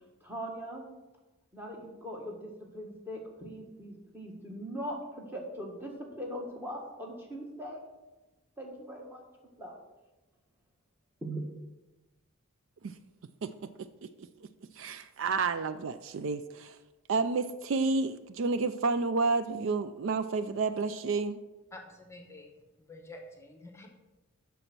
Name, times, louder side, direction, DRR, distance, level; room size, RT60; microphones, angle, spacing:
voice 1, 0.2-0.9 1.5-7.9 8.6-9.2 9.6-9.7 11.2-11.4, equal, 10° right, -1 dB, 1.5 m, -40 dB
voice 2, 14.0-14.5 14.8-16.8 17.1-21.4, right 4 dB, 60° right, 12 dB, 0.4 m, -30 dB
voice 3, 21.7-23.9, left 2 dB, 10° left, 3 dB, 0.9 m, -49 dB
8.0 x 6.3 x 5.9 m, 1.1 s
head